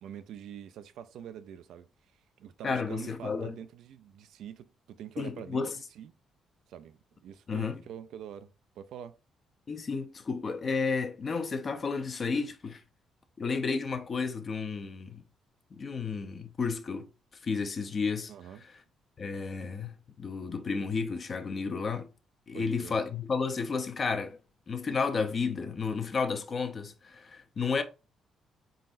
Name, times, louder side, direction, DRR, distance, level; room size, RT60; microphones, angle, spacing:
voice 1, 0.0-1.9 2.4-6.1 6.7-8.5 8.8-9.2 18.3-18.6 22.5-23.0, right 9 dB, 80° right, 0.4 m, -45 dB
voice 2, 2.6-3.5 5.2-5.7 7.5-7.8 9.7-12.8 13.4-15.2 15.7-17.1 17.4-18.3 19.2-22.1 22.5-24.4 24.7-27.8, left 5 dB, 40° left, 0.6 m, -32 dB
4.1 x 3.9 x 2.5 m
cardioid pair, 90°, 0 cm